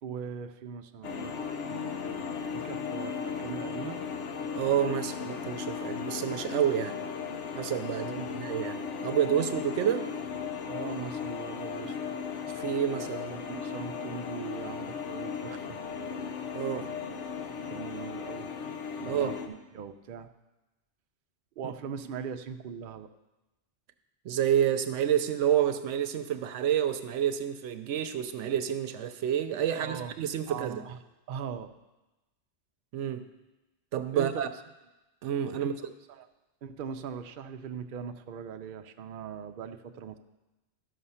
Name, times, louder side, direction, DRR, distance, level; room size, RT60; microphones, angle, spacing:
voice 1, 0.0-4.0 8.0-8.3 10.7-12.0 13.3-15.8 16.1-16.2 17.7-18.5 18.9-20.3 21.6-23.1 29.7-30.1 30.5-31.0 31.3-31.7 34.1-34.4 35.6-36.3 36.6-40.2, right 7 dB, 55° right, 7 dB, 0.6 m, -40 dB
sound 1, 1.0-19.5, left 6 dB, 80° left, 1.1 m, -36 dB
voice 2, 4.6-7.0 7.6-10.1 12.5-13.4 16.5-16.9 19.0-19.3 21.6-21.7 24.2-30.8 32.9-33.3 33.9-34.5 35.2-35.9, right 9 dB, 80° right, 10 dB, 1.0 m, -29 dB
13.0 x 5.8 x 5.6 m, 1.1 s
omnidirectional pair, 1.2 m